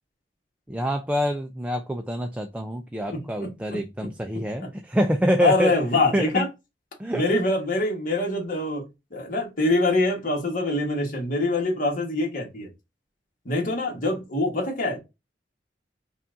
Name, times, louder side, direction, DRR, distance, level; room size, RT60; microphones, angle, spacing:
voice 1, 0.7-6.5 7.0-7.2, equal, 5° right, 0.4 m, -26 dB
voice 2, 3.1-3.8 4.6-4.7 5.4-6.5 7.1-8.8 9.1-12.7 13.4-15.0, left 2 dB, 50° left, 1.3 m, -24 dB
5.4 x 2.4 x 2.5 m
head